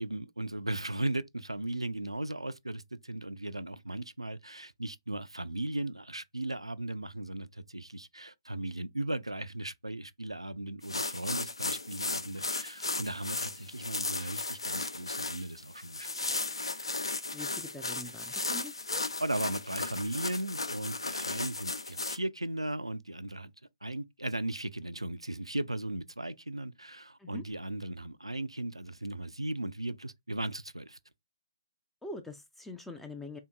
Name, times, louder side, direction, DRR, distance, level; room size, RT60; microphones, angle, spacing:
voice 1, 0.0-16.1 19.2-23.5 23.8-31.0, right 1 dB, 85° right, 0.3 m, -37 dB
sound 1, 10.8-22.2, left 3 dB, 75° left, 0.5 m, -35 dB
voice 2, 17.3-19.0 27.2-27.4 32.0-33.4, left 2 dB, 5° left, 0.3 m, -44 dB
3.6 x 2.7 x 2.2 m
figure-of-eight pair, 135°, 3 cm